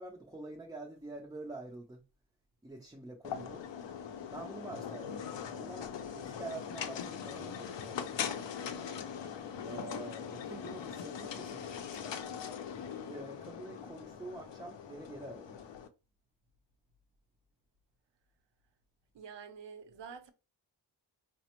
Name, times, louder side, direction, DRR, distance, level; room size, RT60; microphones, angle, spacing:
voice 1, 0.0-2.0 2.6-3.6 4.3-8.3 9.6-12.1 12.7-15.6, right 2 dB, 10° right, 0.4 m, -47 dB
sound 1, 3.2-15.9, left 7 dB, 80° left, 0.5 m, -41 dB
voice 2, 19.1-20.3, right 6 dB, 75° right, 0.7 m, -47 dB
4.9 x 2.1 x 2.9 m
wide cardioid pair, 175°, 43 cm